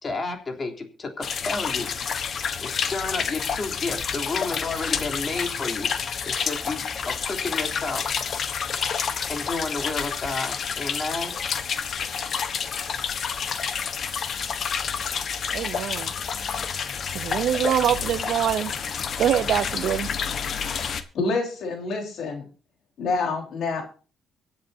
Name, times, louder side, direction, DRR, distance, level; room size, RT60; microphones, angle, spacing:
voice 1, 0.0-1.9 2.6-5.9 6.2-8.0 9.3-11.4, left 3 dB, 35° left, 3.3 m, -31 dB
sound 1, 1.2-21.0, left 6 dB, 55° left, 1.2 m, -29 dB
voice 2, 15.5-16.1 17.1-18.7 19.2-20.1, right 10 dB, 75° right, 0.7 m, -24 dB
voice 3, 21.1-22.4 23.0-23.8, left 3 dB, 70° left, 4.2 m, -27 dB
24.0 x 8.3 x 2.8 m
cardioid pair, 90°, 0 cm